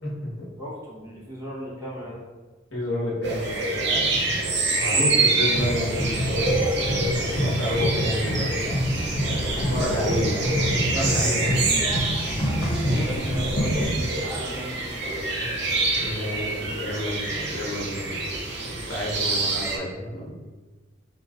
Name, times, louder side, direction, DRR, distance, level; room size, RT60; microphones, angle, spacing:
voice 1, 0.0-0.5 2.7-9.0 9.5-11.5 15.3-15.5 16.0-18.2 18.6-20.4, left 1 dB, 80° left, -6 dB, 1.4 m, -30 dB
voice 2, 0.6-2.2 12.8-14.9, equal, 15° right, -7 dB, 1.1 m, -37 dB
sound 1, 3.2-19.8, right 3 dB, 60° right, 0.7 m, -27 dB
sound 2, 5.4-13.8, equal, 50° left, 1.2 m, -27 dB
4.4 x 3.2 x 2.5 m, 1.3 s
head